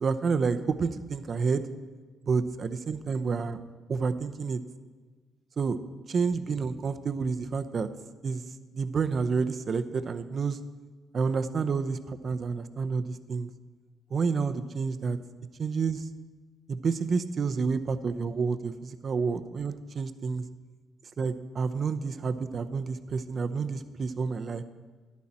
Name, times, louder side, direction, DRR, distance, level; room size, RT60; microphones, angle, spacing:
voice 1, 0.0-1.6 2.2-3.6 3.9-4.6 5.6-5.8 6.1-7.9 8.2-8.4 8.7-10.6 11.1-13.5 14.1-15.2 15.6-16.1 16.7-20.4 21.2-24.6, right 5 dB, 45° right, 10 dB, 0.7 m, -29 dB
12.5 x 10.5 x 4.3 m, 1.4 s
cardioid pair, 90°, 0 cm